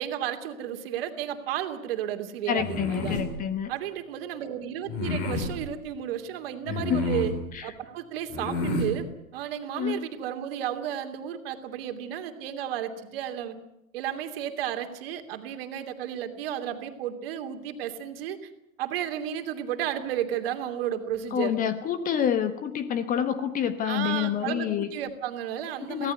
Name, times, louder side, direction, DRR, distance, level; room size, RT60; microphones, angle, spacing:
voice 1, 0.0-3.2 3.7-7.3 7.6-9.1 9.3-13.6 13.9-18.5 18.8-21.5 23.9-26.1, right 10 dB, 40° right, 7 dB, 2.9 m, -33 dB
voice 2, 2.5-3.7 6.7-7.1 7.5-7.7 9.7-10.0 21.3-24.9 25.8-26.1, left 9 dB, 20° left, 11 dB, 1.4 m, -28 dB
sound 1, 2.6-3.3 4.9-5.5 6.7-7.4 8.3-8.9, left 2 dB, 35° left, 7.2 m, -29 dB
24.0 x 18.0 x 9.6 m, 0.83 s
figure-of-eight pair, 105°, 42 cm